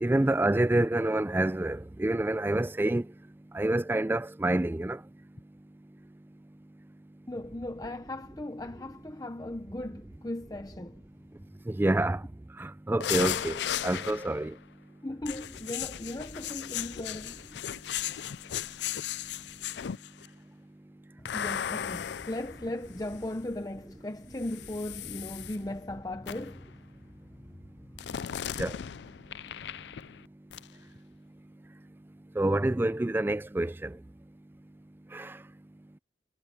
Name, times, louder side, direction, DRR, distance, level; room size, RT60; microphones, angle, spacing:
voice 1, 0.0-3.0 3.5-5.0 11.7-12.2 12.6-14.5 28.6-28.7 32.4-33.9 35.1-35.3, right 1 dB, 10° right, 0.3 m, -27 dB
voice 2, 7.3-11.0 15.0-17.4 21.3-26.7, left 1 dB, 20° left, 0.7 m, -37 dB
sound 1, 13.0-14.5 15.2-20.3 21.3-23.4 24.4-25.6 26.3-26.6 28.0-30.3 30.5-30.7, left 10 dB, 75° left, 0.4 m, -36 dB
head